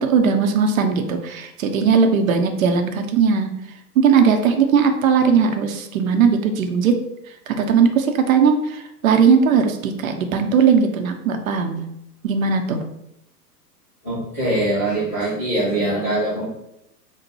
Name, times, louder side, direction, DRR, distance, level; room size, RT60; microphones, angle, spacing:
voice 1, 0.0-3.5 4.0-7.0 7.5-11.8 12.2-12.8, right 6 dB, 55° right, 6 dB, 0.7 m, -18 dB
voice 2, 14.0-16.4, right 1 dB, 10° left, -11 dB, 0.3 m, -22 dB
4.0 x 2.2 x 4.6 m, 0.82 s
figure-of-eight pair, 105°, 49 cm